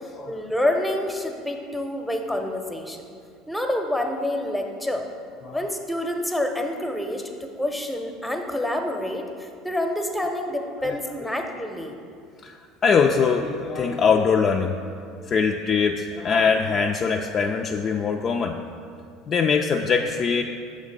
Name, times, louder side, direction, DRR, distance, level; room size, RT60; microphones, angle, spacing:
voice 1, 0.3-3.0 3.5-5.1 5.5-12.0, left 1 dB, ahead, 3 dB, 0.7 m, -27 dB
voice 2, 12.8-14.8 15.3-18.6 19.3-20.4, left 5 dB, 40° left, 2 dB, 0.3 m, -22 dB
6.4 x 3.2 x 5.2 m, 2.3 s
hypercardioid pair, 75°, 0 cm